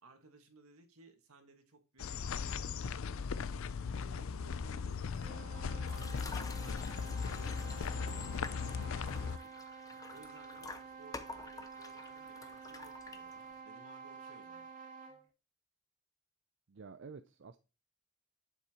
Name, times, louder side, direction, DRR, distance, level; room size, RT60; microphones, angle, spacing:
voice 1, 0.0-3.2 3.7-9.6 10.1-14.7, right 3 dB, 75° right, 6 dB, 1.7 m, -60 dB
sound 1, 2.0-9.4, left 5 dB, 65° left, 0.4 m, -38 dB
sound 2, 5.0-15.3, right 5 dB, 35° right, 2.2 m, -50 dB
sound 3, 5.8-13.6, left 3 dB, 15° left, 0.5 m, -50 dB
voice 2, 16.7-17.6, right 5 dB, 55° right, 9 dB, 0.5 m, -50 dB
8.2 x 7.1 x 2.9 m, 0.30 s
head